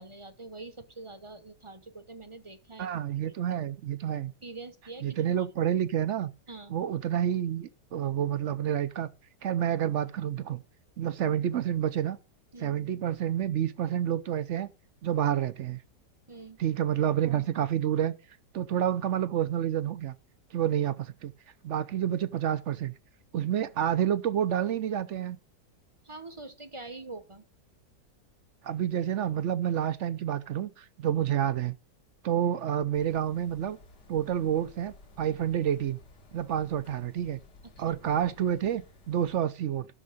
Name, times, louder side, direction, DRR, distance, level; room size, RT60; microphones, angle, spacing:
voice 1, 0.0-2.9 3.2-3.3 4.4-5.5 6.5-6.8 12.5-12.8 16.3-16.6 23.3-23.5 26.0-27.4 37.9-38.0, right 3 dB, 25° right, 0.7 m, -45 dB
voice 2, 2.8-4.3 5.0-6.3 6.7-9.1 9.4-10.6 11.0-12.2 12.6-14.7 15.0-15.8 16.6-18.1 18.5-20.2 20.5-21.3 21.6-23.0 23.3-25.4 28.6-31.8 32.2-33.8 34.1-36.0 36.3-37.4 37.8-39.9, right 10 dB, 65° right, 0.7 m, -29 dB
sound 1, 32.9-39.4, left 3 dB, 75° left, 2.3 m, -55 dB
12.5 x 6.6 x 5.1 m
omnidirectional pair, 1.8 m